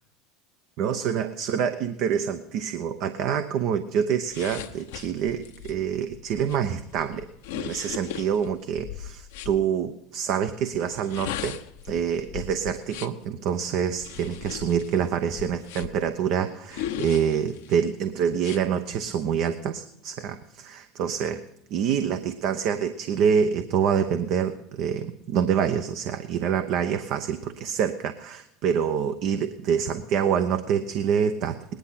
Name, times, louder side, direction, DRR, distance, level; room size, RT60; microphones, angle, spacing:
voice 1, 0.8-7.3 7.5-11.6 11.8-21.4 21.7-31.8, right 8 dB, 60° right, 9 dB, 0.8 m, -26 dB
sound 1, 4.3-9.6 10.9-13.3 14.0-16.1 16.7-17.8 18.4-18.6, left 11 dB, 75° left, 0.9 m, -38 dB
18.5 x 10.5 x 5.8 m, 0.80 s
hypercardioid pair, 85°, 0 cm